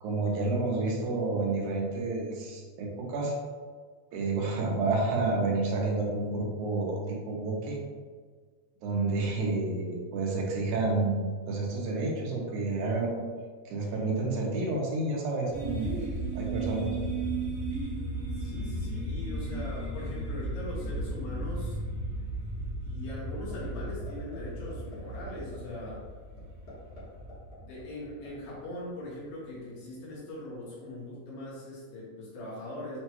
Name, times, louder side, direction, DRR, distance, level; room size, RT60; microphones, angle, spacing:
voice 1, 0.0-3.3 4.1-7.8 8.8-13.2 13.7-15.9 16.3-17.0, right 3 dB, 80° right, -1 dB, 2.0 m, -30 dB
sound 1, 15.5-28.4, right 1 dB, 60° right, 0.8 m, -35 dB
voice 2, 18.3-21.8 22.4-26.0 27.6-33.0, left 1 dB, 80° left, -6 dB, 2.8 m, -41 dB
sound 2, 23.5-23.8 24.1-24.4 24.7-25.0 25.3-25.6 25.9-26.0 26.4-27.0 27.3-28.3, left 4 dB, 55° left, 1.1 m, -49 dB
6.5 x 2.2 x 2.9 m, 1.5 s
omnidirectional pair, 3.6 m